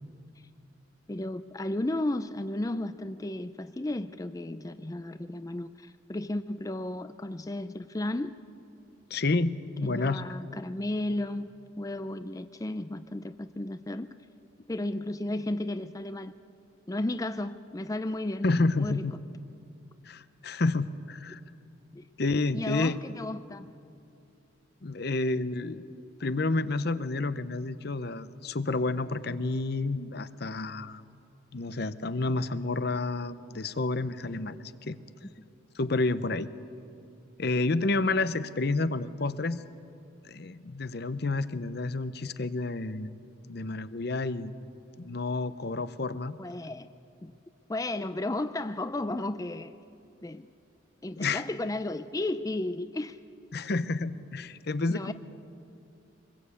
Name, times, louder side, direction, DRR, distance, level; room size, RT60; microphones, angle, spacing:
voice 1, 1.1-8.3 9.8-11.5 11.8-14.1 14.7-16.3 16.9-18.5 18.8-19.0 21.9-22.1 22.5-23.7 35.2-35.5 46.4-46.9 47.2-47.3 47.7-49.8 50.2-50.5 51.0-53.2 54.9-55.1, left 1 dB, 20° left, 11 dB, 0.5 m, -33 dB
voice 2, 9.1-10.2 18.4-19.1 20.1-21.4 22.2-23.0 24.8-25.9 26.2-31.0 31.5-35.0 35.7-36.5 37.4-39.6 40.2-43.1 43.4-44.5 45.0-46.4 51.2-51.4 53.5-55.1, left 3 dB, 55° left, 14 dB, 0.8 m, -30 dB
25.0 x 21.0 x 8.4 m, 2.6 s
head